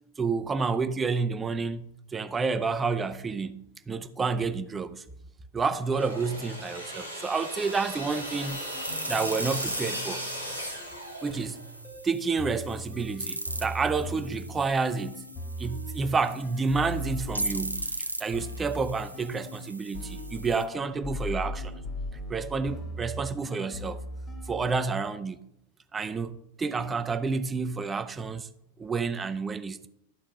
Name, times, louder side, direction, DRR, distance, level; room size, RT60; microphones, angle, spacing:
voice 1, 0.2-1.8 2.1-5.0 5.5-8.6 9.1-10.2 11.2-11.6 12.0-15.2 15.6-17.9 18.2-21.7 22.3-24.0 24.5-25.4 25.9-28.5 28.8-29.9, right 4 dB, 15° right, 0.6 m, -29 dB
sound 1, 5.8-11.7, equal, 85° left, 1.8 m, -37 dB
sound 2, 7.6-20.7, right 1 dB, 85° right, 0.6 m, -39 dB
sound 3, 8.7-17.9 18.3-19.7 19.9-24.6, equal, 25° left, 1.8 m, -39 dB
11.5 x 4.2 x 5.2 m
figure-of-eight pair, 90°, 0 cm